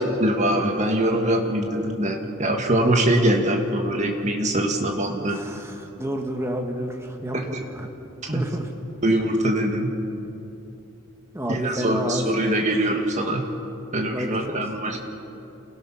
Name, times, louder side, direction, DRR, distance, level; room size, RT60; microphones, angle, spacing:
voice 1, 0.2-5.4 7.3-7.6 8.2-8.4 9.0-9.9 11.5-13.4 13.9-15.0, right 1 dB, 35° right, 2 dB, 1.9 m, -23 dB
voice 2, 5.1-7.9 8.3-8.7 11.3-12.2 14.1-14.7, equal, 10° right, 3 dB, 1.5 m, -30 dB
28.0 x 17.5 x 5.8 m, 2.9 s
head